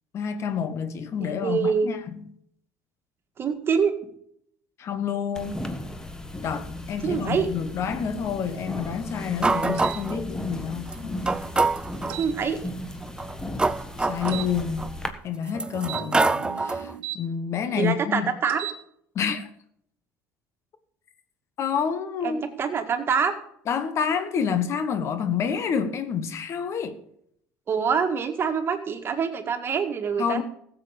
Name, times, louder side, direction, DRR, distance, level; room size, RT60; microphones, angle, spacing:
voice 1, 0.1-2.3 4.8-5.7 6.4-10.9 14.1-14.9 15.2-18.3 19.1-19.5 21.6-22.4 23.7-27.0 30.2-30.4, left 7 dB, 50° left, 1.3 m, -28 dB
voice 2, 1.2-1.9 3.4-3.9 7.0-7.5 12.2-12.6 17.7-18.7 22.2-23.4 27.7-30.4, right 6 dB, 40° right, 1.8 m, -25 dB
sound 1, 5.3-15.1, left 1 dB, 10° left, 1.4 m, -36 dB
sound 2, 9.4-10.2 10.9-11.0 11.3-12.2 13.0-14.9 15.5-16.9, right 3 dB, 15° right, 0.4 m, -25 dB
sound 3, 9.8-10.0 12.1-12.3 14.3-14.5 15.8-17.2 18.4-18.8, right 14 dB, 85° right, 0.9 m, -36 dB
15.0 x 7.7 x 5.2 m
supercardioid pair, 85°, 6 cm